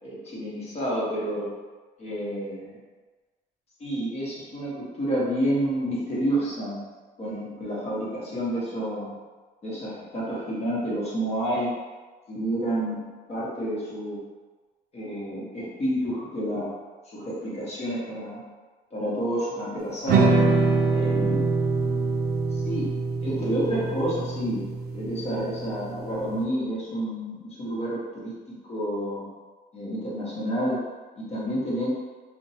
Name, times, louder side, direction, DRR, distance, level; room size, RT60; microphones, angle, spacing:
voice 1, 0.0-1.5 2.0-2.8 3.8-6.9 7.2-9.1 9.6-11.7 12.3-13.0 13.3-14.2 14.9-16.7 17.1-18.4 18.9-20.4 20.9-21.5 22.5-22.9 23.2-24.7 24.9-29.3 29.7-30.8 31.2-31.9, equal, 40° left, -7 dB, 1.0 m, -29 dB
sound 1, 20.1-26.3, right 3 dB, 70° right, 0.4 m, -24 dB
2.6 x 2.2 x 2.7 m, 1.3 s
cardioid pair, 110°, 17 cm